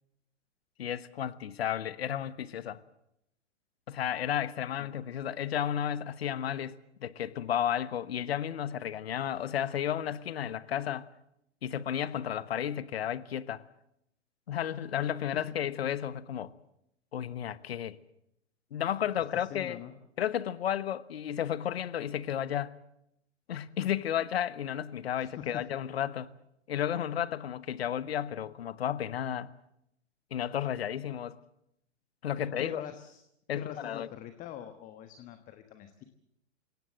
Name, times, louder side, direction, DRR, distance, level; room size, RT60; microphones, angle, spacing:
voice 1, 0.8-2.8 3.9-11.1 11.6-13.6 14.5-16.5 17.1-18.0 18.7-19.8 20.2-22.7 23.5-26.3 26.7-29.5 30.3-31.4 32.2-32.8 33.5-34.1, left 10 dB, 55° left, 1.2 m, -33 dB
voice 2, 15.3-15.7 19.3-19.9 25.2-25.7 32.4-33.2 33.5-36.0, left 11 dB, 20° left, 1.3 m, -44 dB
28.0 x 17.0 x 7.6 m
figure-of-eight pair, 115°, 37 cm